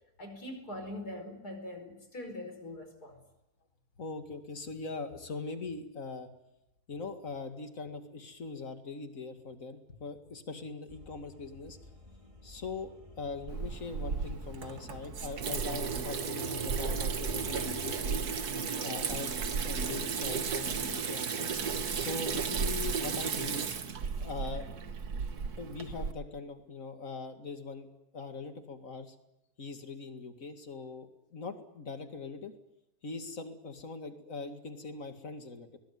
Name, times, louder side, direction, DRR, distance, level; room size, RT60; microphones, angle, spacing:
voice 1, 0.2-3.2, left 1 dB, 90° left, 5 dB, 5.3 m, -42 dB
voice 2, 4.0-6.3 6.9-11.8 12.4-18.5 18.8-19.3 19.6-21.5 21.9-23.8 24.2-24.6 25.6-27.9 28.1-29.2 29.6-32.5 33.0-35.8, left 4 dB, 60° left, 7 dB, 2.5 m, -41 dB
sound 1, 10.9-18.2, left 4 dB, 20° right, 2.2 m, -51 dB
Water tap faucet / Sink (filling or washing), 13.5-26.1, right 6 dB, 85° right, 1.9 m, -34 dB
21.5 x 20.5 x 9.5 m, 0.92 s
omnidirectional pair, 1.6 m